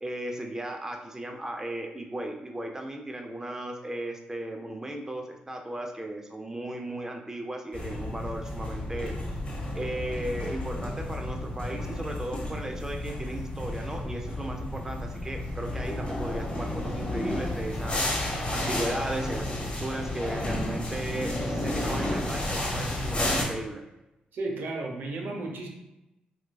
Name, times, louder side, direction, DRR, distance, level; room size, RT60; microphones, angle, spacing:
voice 1, 0.0-9.1 9.7-23.8, right 1 dB, 15° right, 3 dB, 0.5 m, -36 dB
sound 1, 7.7-23.4, left 1 dB, 35° left, 1.0 m, -32 dB
voice 2, 24.3-25.7, right 2 dB, 70° right, 1 dB, 0.6 m, -33 dB
4.4 x 2.3 x 2.3 m, 0.92 s
supercardioid pair, 50°, 3 cm